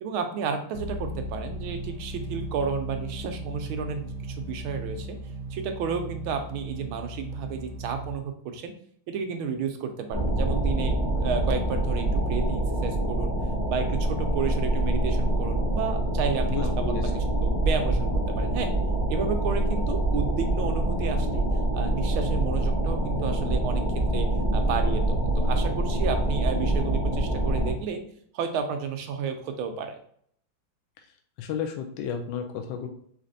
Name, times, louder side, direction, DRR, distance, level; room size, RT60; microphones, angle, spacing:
voice 1, 0.0-5.2 5.5-8.7 9.1-13.3 13.7-18.7 19.1-21.4 21.7-24.3 24.5-28.0 28.3-30.0, right 6 dB, 75° right, 6 dB, 1.5 m, -32 dB
sound 1, 0.7-8.1, right 1 dB, 55° right, 0.9 m, -36 dB
sound 2, 10.1-27.7, right 1 dB, 30° left, 1.8 m, -25 dB
voice 2, 16.5-17.1 31.4-32.9, left 7 dB, 75° left, 5 dB, 1.1 m, -32 dB
4.3 x 4.0 x 2.6 m, 0.63 s
omnidirectional pair, 2.4 m